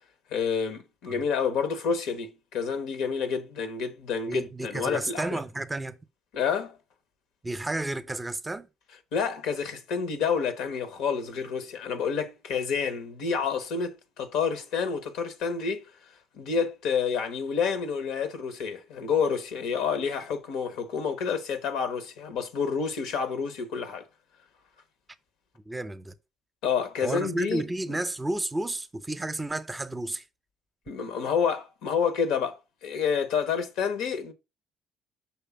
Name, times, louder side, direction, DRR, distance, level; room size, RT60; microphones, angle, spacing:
voice 1, 0.3-5.4 6.3-6.8 9.1-15.9 16.3-24.0 26.6-27.6 30.9-34.3, left 6 dB, 70° left, 1.0 m, -29 dB
voice 2, 4.3-6.0 7.4-8.7 25.7-26.1 27.0-30.2, right 2 dB, 20° right, 0.8 m, -32 dB
5.8 x 3.3 x 5.7 m
hypercardioid pair, 50°, 0 cm